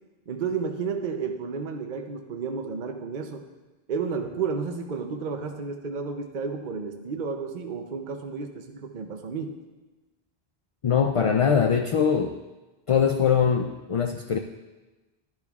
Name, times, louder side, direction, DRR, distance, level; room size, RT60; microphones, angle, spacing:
voice 1, 0.3-3.5 3.9-9.6, right 5 dB, 55° right, 4 dB, 0.8 m, -32 dB
voice 2, 10.8-12.3 12.9-14.4, left 7 dB, 50° left, 5 dB, 0.4 m, -22 dB
11.5 x 10.5 x 2.4 m, 1.2 s
omnidirectional pair, 1.0 m